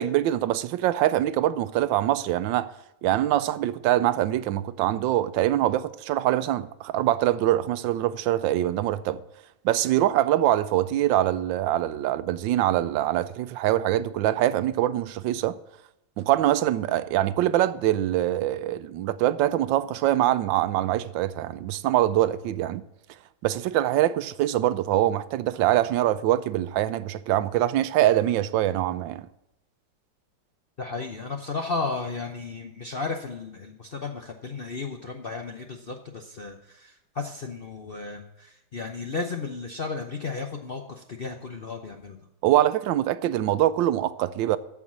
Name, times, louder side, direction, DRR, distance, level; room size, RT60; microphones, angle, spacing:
voice 1, 0.0-2.7 3.0-9.2 9.6-15.6 16.2-22.8 23.4-29.3 42.4-44.6, right 13 dB, 90° right, 1.3 m, -24 dB
voice 2, 30.8-42.2, left 4 dB, 55° left, 0.6 m, -34 dB
14.0 x 4.8 x 7.3 m
omnidirectional pair, 2.0 m